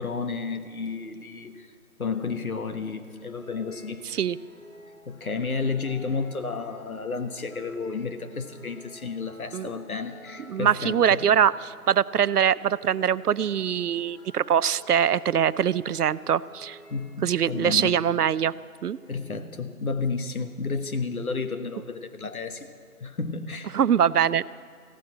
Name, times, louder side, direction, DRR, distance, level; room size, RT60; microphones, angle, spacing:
voice 1, 0.0-1.7 2.0-4.0 5.1-11.2 16.9-18.0 19.1-22.7 23.0-23.8, left 4 dB, 70° left, 8 dB, 1.4 m, -32 dB
sound 1, 2.0-18.2, left 1 dB, 45° left, 4.4 m, -52 dB
voice 2, 10.5-16.8 17.2-18.5 18.8-19.0 23.7-24.4, right 8 dB, 80° right, 19 dB, 0.5 m, -23 dB
15.0 x 10.5 x 8.7 m, 2.2 s
figure-of-eight pair, 160°, 45 cm